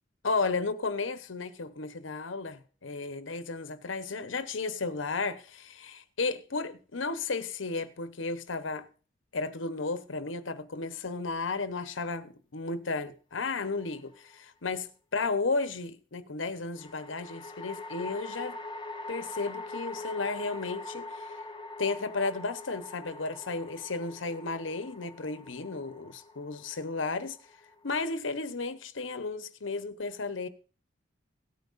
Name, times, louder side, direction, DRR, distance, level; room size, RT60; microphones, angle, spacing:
voice 1, 0.2-8.9 9.3-18.6 19.1-21.4 21.8-27.4 27.8-30.5, left 3 dB, 85° left, 1.0 m, -33 dB
sound 1, 13.6-14.3 16.8-28.1, left 2 dB, 25° left, 1.1 m, -43 dB
17.5 x 9.4 x 2.6 m
head